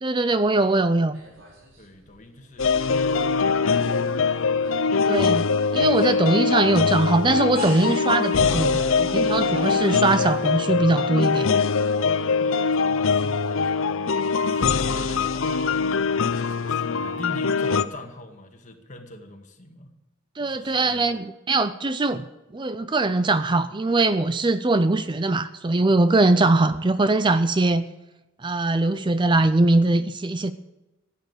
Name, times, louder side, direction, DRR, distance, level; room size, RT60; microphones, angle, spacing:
voice 1, 0.0-1.2 5.0-5.5 5.7-11.5 20.4-22.3 22.5-27.9 28.4-30.5, right 2 dB, 25° right, 12 dB, 0.5 m, -21 dB
sound 1, 1.1-2.2 2.5-3.3 3.6-5.2 5.6-7.2 7.5-10.7, right 1 dB, 70° right, 4.1 m, -39 dB
voice 2, 1.8-4.6 12.3-15.9 16.3-19.9 20.4-21.1, left 1 dB, 40° left, 4 dB, 2.0 m, -43 dB
sound 2, 2.6-17.8, left 5 dB, 85° left, 0.7 m, -22 dB
15.5 x 9.3 x 8.2 m, 1.0 s
head